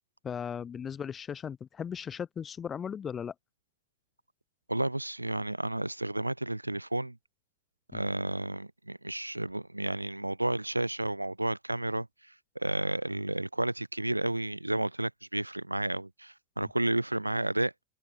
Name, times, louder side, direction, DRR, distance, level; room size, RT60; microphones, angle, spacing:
voice 1, 0.2-3.3 7.9-8.0 16.6-16.7, left 7 dB, 20° left, 6.4 m, -37 dB
voice 2, 4.7-7.2 7.9-12.1 12.5-17.7, right 1 dB, 85° right, 1.0 m, -31 dB
open air
figure-of-eight pair, 90°, 0 cm